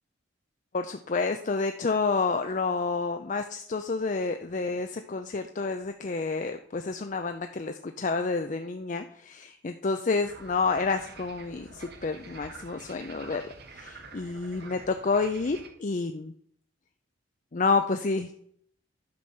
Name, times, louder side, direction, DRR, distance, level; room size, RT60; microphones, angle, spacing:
voice 1, 0.7-13.4 13.7-16.3 17.5-18.3, left 4 dB, 40° left, 7 dB, 0.5 m, -29 dB
sound 1, 10.2-15.7, right 3 dB, 55° right, 1.3 m, -47 dB
10.5 x 6.2 x 5.4 m, 0.67 s
head